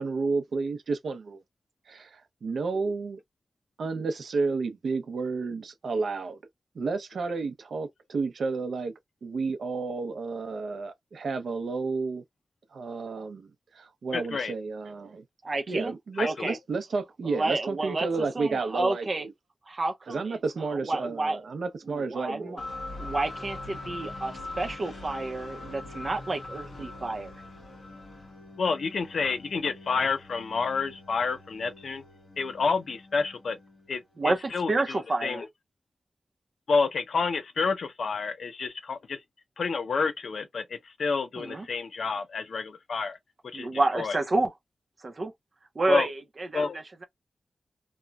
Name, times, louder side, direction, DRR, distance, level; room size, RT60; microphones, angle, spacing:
voice 1, 0.0-1.4 1.9-3.2 3.8-6.4 6.7-8.9 9.2-12.2 12.7-15.2 15.7-19.3 20.1-22.6, right 4 dB, 80° right, 0.6 m, -31 dB
voice 2, 14.1-14.5 16.2-16.6 28.6-32.0 32.4-33.6 33.9-35.5 36.7-39.2 39.6-43.2 43.4-43.7 43.9-44.2 45.9-46.1 46.5-46.8, left 4 dB, 70° left, 0.5 m, -29 dB
voice 3, 15.4-15.9 16.2-16.6 17.2-18.1 18.3-19.2 19.7-20.4 20.7-21.4 21.9-22.6 23.0-27.3 34.2-34.4 34.7-35.4 41.4-41.7 43.5-44.5 45.0-45.3 45.7-47.0, right 2 dB, 35° right, 0.6 m, -30 dB
sound 1, 22.6-34.3, left 2 dB, 50° left, 1.4 m, -43 dB
3.0 x 2.2 x 2.3 m
wide cardioid pair, 180°, 0 cm